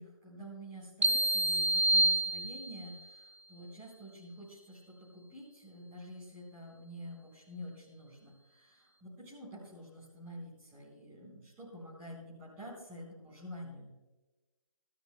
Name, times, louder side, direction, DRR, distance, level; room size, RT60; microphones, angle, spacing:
voice 1, 0.0-13.9, equal, 10° right, -7 dB, 4.2 m, -48 dB
sound 1, 1.0-3.0, right 1 dB, 55° right, 1.0 m, -28 dB
26.5 x 12.5 x 2.2 m, 1.1 s
figure-of-eight pair, 155°, 18 cm